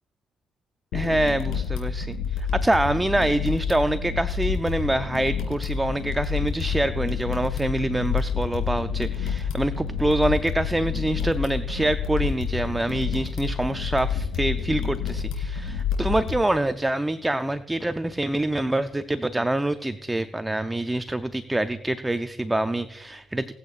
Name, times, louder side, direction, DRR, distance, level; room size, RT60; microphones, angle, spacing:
sound 1, 0.9-16.3, left 6 dB, 75° left, 3.1 m, -28 dB
voice 1, 0.9-23.5, right 1 dB, 10° right, 11 dB, 0.5 m, -25 dB
20.5 x 8.3 x 2.5 m, 0.93 s
cardioid pair, 80°, 0 cm